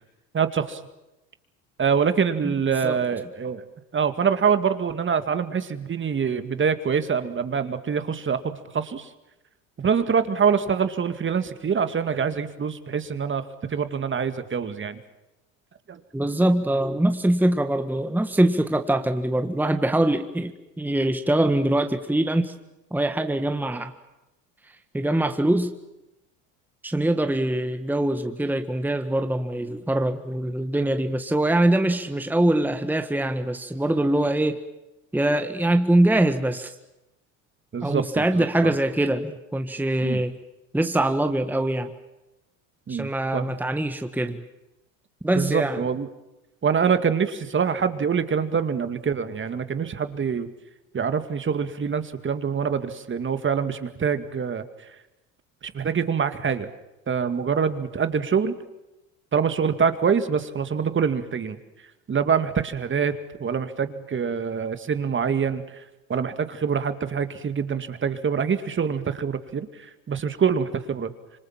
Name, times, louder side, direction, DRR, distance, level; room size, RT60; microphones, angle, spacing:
voice 1, 0.3-0.8 1.8-3.6 3.9-9.1 9.8-15.0 15.9-16.0 37.7-38.7 40.0-40.2 42.9-43.5 45.3-46.1 46.6-50.5 50.9-54.6 55.6-56.7 57.1-58.5 59.3-61.6 62.1-65.6 66.1-71.1, right 6 dB, 30° right, 10 dB, 2.2 m, -25 dB
voice 2, 16.1-22.5 22.9-23.9 24.9-25.7 26.8-34.6 35.1-36.7 37.8-40.3 40.7-41.9 42.9-44.4 45.2-45.8, right 1 dB, 5° right, 7 dB, 1.7 m, -23 dB
26.5 x 25.0 x 7.5 m, 0.95 s
hypercardioid pair, 80°, 39 cm